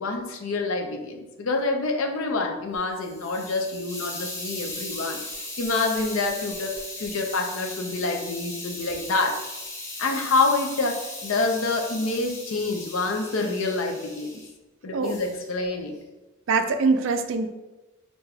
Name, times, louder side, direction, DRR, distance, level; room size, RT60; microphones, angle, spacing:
voice 1, 0.0-5.2 5.6-9.4 10.0-14.4 14.8-15.9, left 3 dB, 65° left, 3 dB, 0.5 m, -27 dB
Hiss, 2.7-14.5 15.0-15.4, left 2 dB, 15° left, 0.4 m, -37 dB
voice 2, 16.5-17.5, right 4 dB, 60° right, 8 dB, 0.3 m, -23 dB
4.7 x 2.6 x 2.3 m, 1.1 s
head